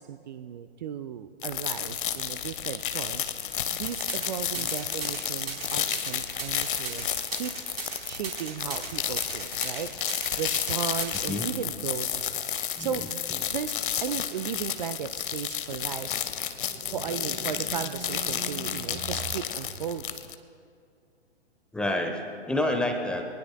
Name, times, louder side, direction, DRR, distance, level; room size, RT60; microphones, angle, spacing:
voice 1, 0.0-7.5 8.0-12.5 12.8-13.2 13.5-16.1 16.9-20.2, right 8 dB, 40° right, 10 dB, 0.6 m, -36 dB
sound 1, 1.4-20.4, left 9 dB, 50° left, 0.9 m, -32 dB
sound 2, 3.9-11.2, right 5 dB, 65° right, 4.0 m, -37 dB
voice 2, 12.8-13.1 13.4-13.5 21.7-23.3, left 1 dB, 5° left, 4 dB, 0.9 m, -29 dB
sound 3, 16.6-20.3, right 4 dB, 25° right, 2.2 m, -42 dB
24.0 x 19.5 x 2.3 m, 2.3 s
figure-of-eight pair, 115°, 33 cm